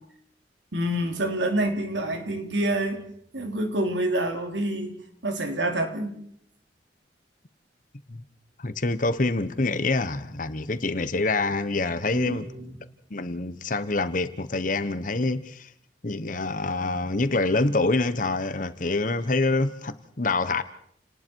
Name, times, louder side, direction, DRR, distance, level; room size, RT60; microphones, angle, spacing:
voice 1, 0.7-3.0 3.3-6.2 12.1-12.8, right 1 dB, 85° right, 3.4 m, -27 dB
voice 2, 8.6-12.5 13.1-15.7 16.0-20.6, left 3 dB, 45° left, 1.2 m, -26 dB
29.5 x 19.0 x 4.7 m
head